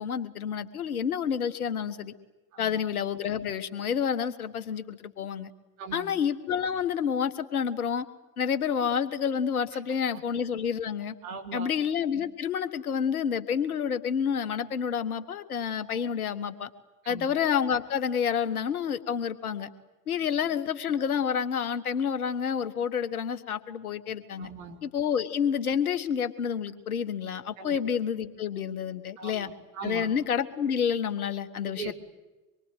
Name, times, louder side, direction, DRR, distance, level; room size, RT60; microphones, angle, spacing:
voice 1, 0.0-2.1 2.6-5.5 5.9-8.0 8.4-11.1 11.5-16.7 17.0-19.7 20.1-24.5 24.8-29.5 29.8-31.9, left 7 dB, 75° left, 10 dB, 1.7 m, -29 dB
voice 2, 5.8-6.2 9.7-9.8 10.1-10.2 11.2-11.7 17.0-17.3 24.4-24.8 27.6-27.8 29.2-30.1 31.7-31.9, right 5 dB, 65° right, 3 dB, 3.9 m, -40 dB
25.5 x 23.0 x 9.3 m, 1.1 s
figure-of-eight pair, 70°, 43 cm